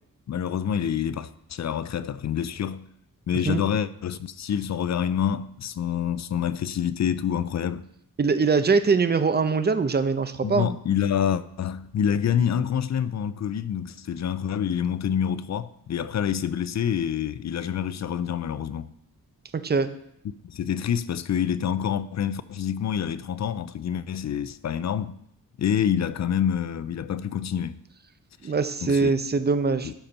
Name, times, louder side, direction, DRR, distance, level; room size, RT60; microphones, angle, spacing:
voice 1, 0.3-2.9 3.3-7.9 10.4-18.9 20.4-25.2 25.6-27.8 28.4-28.5 28.8-29.1 29.8-29.9, left 9 dB, 50° left, 0.5 m, -27 dB
voice 2, 8.2-10.7 19.5-19.9 28.4-29.9, right 4 dB, 30° right, 0.7 m, -22 dB
12.5 x 4.4 x 5.4 m
wide cardioid pair, 105°, 35 cm